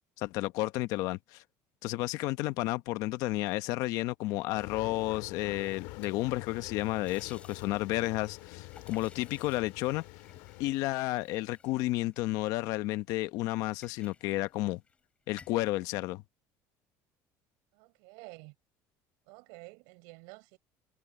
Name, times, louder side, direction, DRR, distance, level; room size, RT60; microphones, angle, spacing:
voice 1, 0.2-1.4 1.8-10.0 10.6-14.8 15.3-16.2, left 18 dB, 65° left, 0.9 m, -32 dB
sound 1, 4.6-10.7, left 22 dB, 85° left, 2.3 m, -46 dB
sound 2, 5.2-13.0 13.4-15.0 15.3-15.7, left 5 dB, 20° left, 3.0 m, -59 dB
voice 2, 17.7-18.5 19.3-20.6, right 30 dB, 85° right, 5.7 m, -50 dB
cardioid pair, 160°, 7 cm